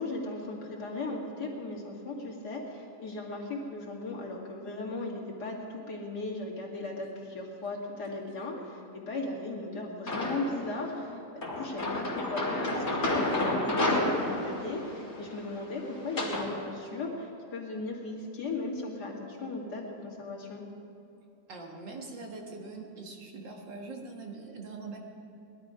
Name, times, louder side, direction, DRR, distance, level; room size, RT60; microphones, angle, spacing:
voice 1, 0.0-20.6, left 2 dB, 65° left, -2 dB, 2.8 m, -37 dB
sound 1, 10.1-10.7 11.4-16.5, left 1 dB, 40° left, 2.6 m, -30 dB
voice 2, 21.5-25.0, right 3 dB, 85° right, 0 dB, 2.4 m, -42 dB
19.5 x 12.0 x 5.0 m, 2.9 s
omnidirectional pair, 1.9 m